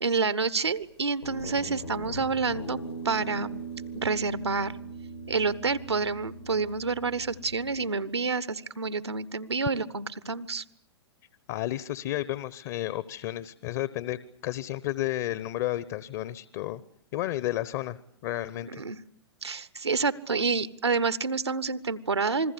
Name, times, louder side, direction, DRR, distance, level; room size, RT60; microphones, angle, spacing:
voice 1, 0.0-2.8 3.0-3.6 3.9-4.7 5.3-10.6 18.7-19.0 19.4-22.5, right 4 dB, 85° right, 16 dB, 1.2 m, -28 dB
Guitar, 1.2-7.8, right 3 dB, 85° left, 4.7 m, -40 dB
voice 2, 11.5-16.8 17.1-18.0 18.2-18.8, left 14 dB, 45° left, 17 dB, 1.0 m, -32 dB
28.0 x 21.0 x 8.3 m, 0.66 s
figure-of-eight pair, 105°, 14 cm